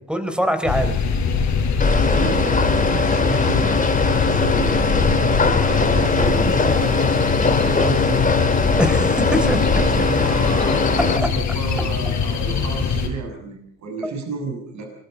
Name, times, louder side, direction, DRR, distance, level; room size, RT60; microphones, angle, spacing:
voice 1, 0.1-1.0 6.5-6.6 8.8-9.6 11.2-11.3 14.0-14.1, equal, 5° right, 8 dB, 4.3 m, -22 dB
sound 1, 0.7-13.1, left 5 dB, 70° left, 5.1 m, -22 dB
sound 2, 1.8-11.2, left 3 dB, 25° left, 2.8 m, -21 dB
voice 2, 2.0-3.7 4.0-8.4 9.7-14.9, right 4 dB, 65° right, 3 dB, 6.6 m, -32 dB
24.5 x 22.5 x 5.4 m, 0.76 s
cardioid pair, 90°, 30 cm